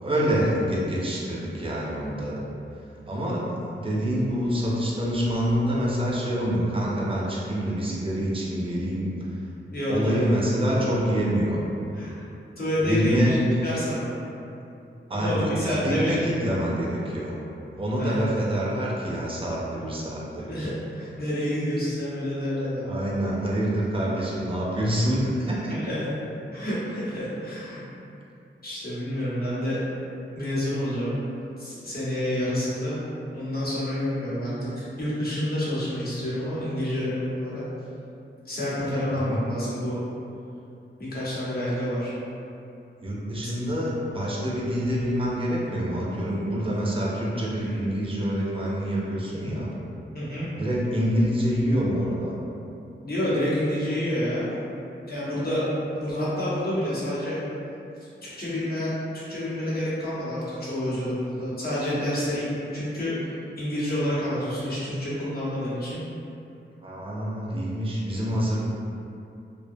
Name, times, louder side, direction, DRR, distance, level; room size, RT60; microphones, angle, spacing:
voice 1, 0.0-2.4 3.1-3.5 3.8-9.1 9.9-11.6 12.8-13.4 15.1-17.3 17.8-20.7 22.9-25.8 39.1-39.4 43.0-49.7 50.5-52.3 66.8-68.6, equal, 25° right, -5 dB, 0.5 m, -26 dB
voice 2, 9.7-10.2 11.9-12.2 12.6-13.4 13.6-14.1 15.1-16.2 18.0-18.3 20.5-23.0 25.7-26.1 26.5-27.8 28.6-29.8 30.3-31.2 31.6-33.0 33.3-37.6 38.4-40.0 41.0-42.1 47.6-47.7 50.1-50.4 53.0-54.6 55.1-55.7 55.9-57.4 58.2-66.0, left 1 dB, 50° left, -10 dB, 0.9 m, -28 dB
2.6 x 2.1 x 2.6 m, 2.7 s
wide cardioid pair, 100°, 21 cm